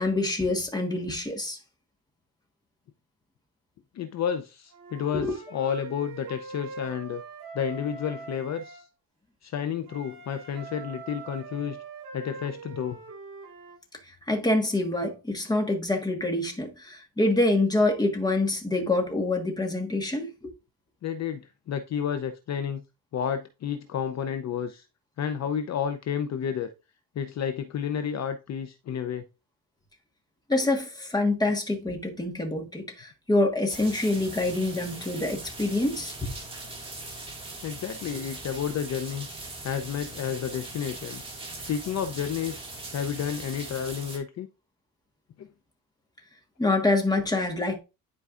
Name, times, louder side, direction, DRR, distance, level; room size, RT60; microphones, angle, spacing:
voice 1, 0.0-1.6 5.1-5.4 14.3-20.5 30.5-36.3 46.6-47.8, left 2 dB, 10° left, 1.4 m, -26 dB
voice 2, 4.0-7.2 7.5-8.8 9.4-11.8 12.1-13.0 21.0-21.4 21.7-22.8 23.1-24.8 25.2-26.7 27.2-29.2 37.6-39.3 39.6-41.2 41.7-42.6 42.9-44.5 45.4-45.5, left 8 dB, 50° left, 0.6 m, -31 dB
Wind instrument woodwind instrument, 4.7-8.8 9.9-13.8, right 4 dB, 65° right, 4.4 m, -43 dB
sound 1, 33.7-44.2, right 2 dB, 15° right, 1.9 m, -40 dB
11.0 x 4.6 x 2.5 m
cardioid pair, 150°, 35 cm